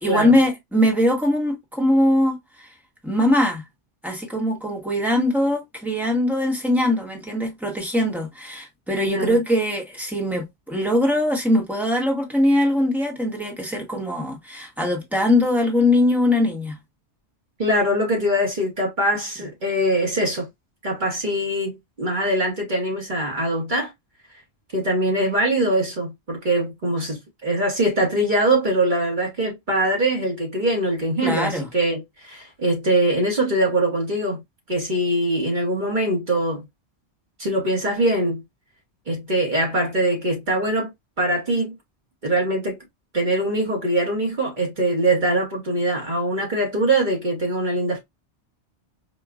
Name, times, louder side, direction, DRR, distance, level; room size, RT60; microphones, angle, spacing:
voice 1, 0.0-2.7 3.0-3.6 4.0-16.7 31.2-31.7, left 1 dB, ahead, 1.0 m, -21 dB
voice 2, 9.1-9.4 17.6-20.5 20.8-23.9 24.7-34.4 34.7-36.7 37.4-38.4 39.1-40.9 41.2-41.7 42.2-42.8 43.1-48.0, right 1 dB, 45° right, 1.2 m, -22 dB
5.1 x 2.3 x 2.4 m
omnidirectional pair, 1.2 m